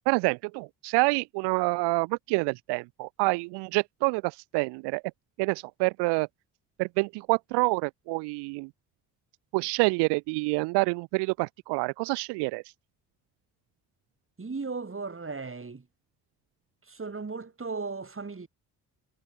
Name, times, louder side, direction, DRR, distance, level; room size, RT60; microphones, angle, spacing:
voice 1, 0.1-5.0 5.4-6.3 6.8-8.7 9.5-12.6, right 28 dB, 75° right, 0.6 m, -27 dB
voice 2, 14.4-15.8 16.9-18.5, right 4 dB, 30° right, 7.1 m, -36 dB
hypercardioid pair, 50°, 42 cm